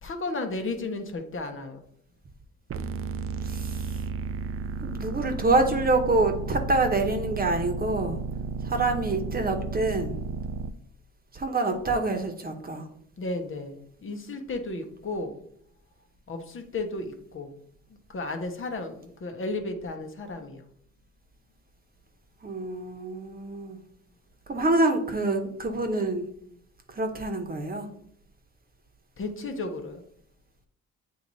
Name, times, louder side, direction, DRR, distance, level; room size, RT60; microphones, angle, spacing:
voice 1, 0.0-1.8 13.2-15.3 16.3-17.5 18.1-20.6 29.2-30.0, left 2 dB, 45° left, 6 dB, 1.0 m, -34 dB
sound 1, 2.7-10.7, right 4 dB, 45° right, 0.5 m, -33 dB
voice 2, 3.4-4.0 4.8-8.2 8.6-10.2 11.3-12.9 22.4-23.8 24.5-26.3 26.9-27.9, right 2 dB, 30° right, 5 dB, 1.1 m, -26 dB
8.4 x 3.1 x 4.0 m, 0.68 s
cardioid pair, 90°, 30 cm